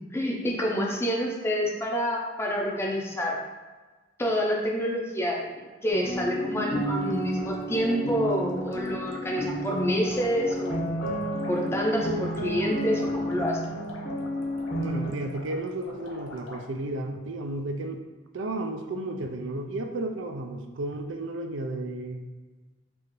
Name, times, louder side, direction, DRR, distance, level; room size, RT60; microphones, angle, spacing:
voice 1, 0.1-3.4 4.2-11.0 11.5-13.7, equal, 15° left, -1 dB, 0.6 m, -28 dB
sound 1, 5.9-15.1, equal, 40° left, 1.1 m, -31 dB
sound 2, 6.7-16.6, left 3 dB, 85° left, 0.7 m, -45 dB
voice 2, 14.8-18.0 18.3-22.2, right 2 dB, 75° right, 5 dB, 0.4 m, -33 dB
4.6 x 2.5 x 3.0 m, 1.3 s
head